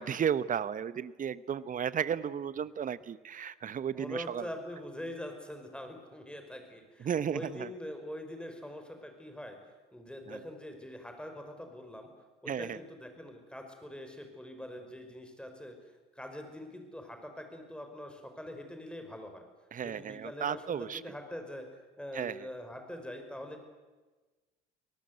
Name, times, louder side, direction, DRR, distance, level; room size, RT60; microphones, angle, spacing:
voice 1, 0.0-4.5 7.0-7.7 10.3-10.4 12.5-12.8 19.7-21.0 22.1-22.5, right 8 dB, 40° right, 17 dB, 1.0 m, -34 dB
voice 2, 3.9-9.6 9.9-12.1 12.4-19.5 19.8-21.7 22.0-23.6, left 1 dB, 5° left, 5 dB, 5.4 m, -44 dB
24.5 x 18.5 x 8.1 m, 1.2 s
hypercardioid pair, 55°, 21 cm